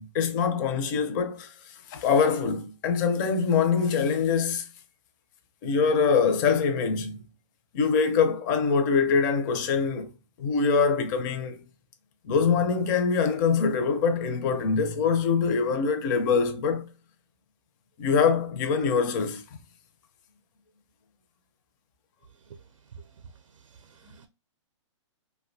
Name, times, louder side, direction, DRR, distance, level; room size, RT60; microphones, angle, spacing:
voice 1, 0.0-1.5 1.9-4.7 5.6-7.2 7.7-10.1 10.4-11.6 12.3-16.9 18.0-19.4, left 5 dB, 35° left, 0.5 m, -24 dB
voice 2, 23.6-24.3, right 6 dB, 80° right, 0.4 m, -49 dB
2.6 x 2.2 x 2.5 m
hypercardioid pair, 140°, 16 cm